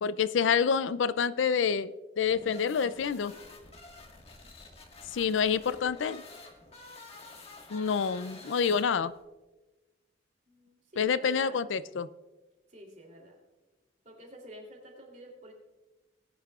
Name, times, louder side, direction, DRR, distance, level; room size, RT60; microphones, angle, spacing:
voice 1, 0.0-3.3 5.1-6.2 7.7-9.1 11.0-12.1, left 6 dB, 85° left, 16 dB, 0.4 m, -27 dB
sound 1, 2.2-9.2, left 3 dB, 35° left, 1.6 m, -50 dB
voice 2, 10.5-11.6 12.7-13.4 14.0-15.5, equal, 40° right, 1 dB, 3.1 m, -50 dB
19.5 x 10.0 x 2.4 m, 1.1 s
head